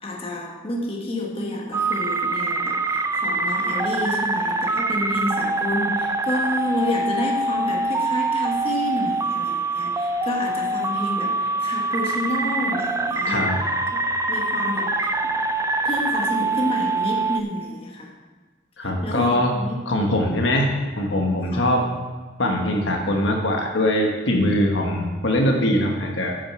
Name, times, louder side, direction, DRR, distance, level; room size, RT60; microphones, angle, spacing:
voice 1, 0.0-13.5 14.3-15.1 15.8-18.1 18.8-19.7 21.5-21.6, left 1 dB, 30° left, -1 dB, 1.4 m, -29 dB
sound 1, 1.7-17.4, right 3 dB, 15° right, 0.4 m, -24 dB
voice 2, 13.3-13.6 18.8-19.5 19.9-21.9 22.4-26.4, left 1 dB, 70° left, 1 dB, 1.3 m, -22 dB
9.1 x 6.5 x 5.8 m, 1.3 s
head